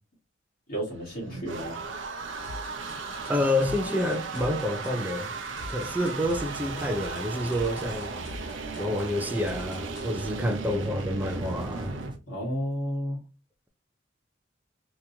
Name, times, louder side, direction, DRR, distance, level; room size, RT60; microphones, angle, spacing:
voice 1, 0.7-1.8 12.3-13.2, equal, 50° left, 1.6 m, -32 dB
sound 1, 0.9-12.1, right 4 dB, 85° right, 0.7 m, -36 dB
sound 2, 2.4-10.1, left 2 dB, 85° left, 1.1 m, -43 dB
voice 2, 3.3-5.3 5.7-8.1 8.8-12.0, left 1 dB, 10° right, 0.5 m, -28 dB
sound 3, 5.8-12.2, equal, 25° right, 1.0 m, -46 dB
3.7 x 3.0 x 2.7 m
head